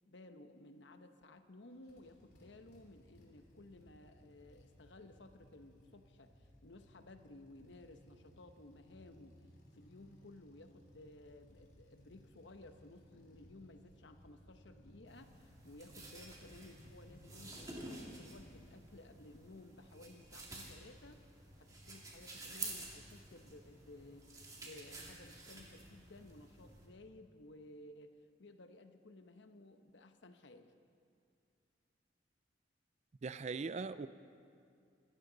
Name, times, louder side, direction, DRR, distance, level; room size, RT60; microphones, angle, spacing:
voice 1, 0.1-9.4 9.7-21.2 21.6-30.7, left 2 dB, 75° left, 8 dB, 1.0 m, -57 dB
sound 1, 1.7-18.6, equal, 55° left, 3.2 m, -63 dB
sound 2, 15.1-26.9, right 2 dB, 20° right, 2.3 m, -51 dB
voice 2, 33.2-34.1, right 4 dB, 35° right, 14 dB, 0.4 m, -40 dB
26.0 x 14.0 x 4.0 m, 2.4 s
head